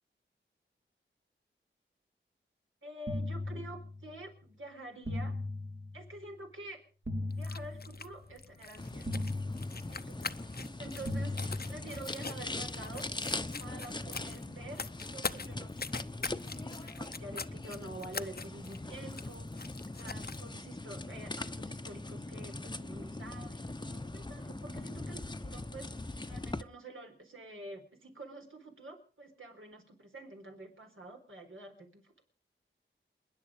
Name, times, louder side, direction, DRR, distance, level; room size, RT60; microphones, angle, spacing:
voice 1, 2.8-5.4 5.9-6.8 7.3-9.1 9.9-13.1 13.6-19.7 20.0-32.1, right 1 dB, 75° right, 3 dB, 4.3 m, -48 dB
sound 1, 3.1-4.2 5.1-6.2 7.1-8.2 9.1-10.2 11.1-12.2, left 2 dB, 55° right, 2.4 m, -38 dB
sound 2, 7.3-20.5, left 4 dB, 50° left, 0.8 m, -44 dB
sound 3, 8.8-26.6, left 2 dB, 20° left, 0.9 m, -41 dB
28.0 x 10.5 x 5.0 m, 0.41 s
wide cardioid pair, 70°, 21 cm